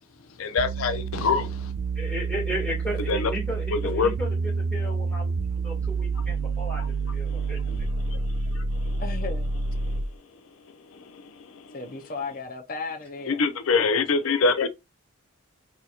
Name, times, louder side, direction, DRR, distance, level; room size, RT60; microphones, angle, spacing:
voice 1, 0.4-1.5 3.1-3.3 3.7-4.1 6.7-6.9 13.3-14.7, left 4 dB, 85° left, 0.5 m, -23 dB
sound 1, 0.6-10.2, right 4 dB, 65° right, 0.4 m, -28 dB
voice 2, 2.0-5.3 5.6-7.9, equal, 5° left, 2.1 m, -34 dB
voice 3, 9.0-9.5 11.7-13.4, left 3 dB, 45° left, 0.7 m, -35 dB
4.1 x 2.8 x 2.4 m
head